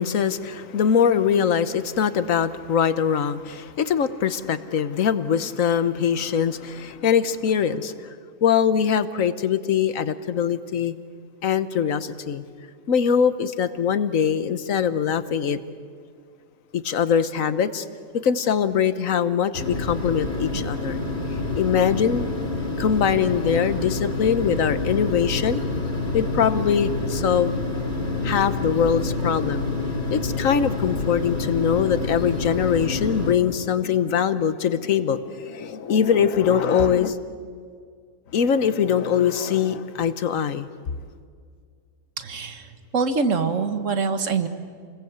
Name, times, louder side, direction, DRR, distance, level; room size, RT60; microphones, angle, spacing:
voice 1, 0.0-8.1 8.4-10.9 11.4-12.4 12.9-15.6 16.7-17.9 18.2-21.0 21.5-22.3 22.8-25.6 26.1-27.5 28.2-29.7 30.1-37.2 38.3-40.7, left 7 dB, 80° left, 13 dB, 1.4 m, -22 dB
sound 1, 19.5-33.3, left 3 dB, 50° left, 3.1 m, -27 dB
voice 2, 42.2-44.5, right 4 dB, 65° right, 9 dB, 1.8 m, -24 dB
28.5 x 21.0 x 8.1 m, 2.1 s
omnidirectional pair, 1.4 m